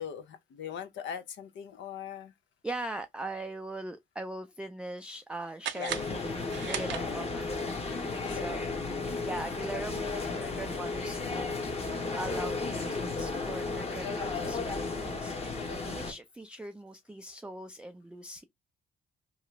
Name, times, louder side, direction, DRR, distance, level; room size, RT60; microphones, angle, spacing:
voice 1, 0.0-2.3 5.7-5.9 8.2-8.5, left 8 dB, 70° left, 0.6 m, -40 dB
voice 2, 2.6-8.6 9.0-18.4, right 1 dB, 5° right, 0.3 m, -41 dB
sound 1, 5.6-7.5, right 11 dB, 65° right, 0.5 m, -38 dB
sound 2, 5.9-16.1, left 3 dB, 30° left, 0.9 m, -34 dB
2.9 x 2.4 x 3.0 m
cardioid pair, 90°, 20 cm